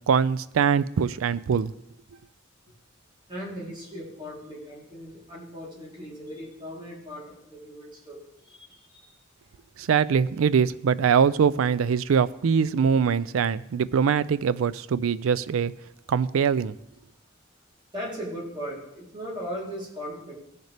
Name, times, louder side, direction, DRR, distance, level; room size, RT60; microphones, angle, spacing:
voice 1, 0.1-1.7 9.8-15.7 16.1-16.7, right 6 dB, 85° right, 17 dB, 0.4 m, -23 dB
voice 2, 3.3-9.2 17.9-20.3, equal, 25° right, -5 dB, 3.4 m, -38 dB
17.0 x 6.5 x 3.4 m, 0.82 s
head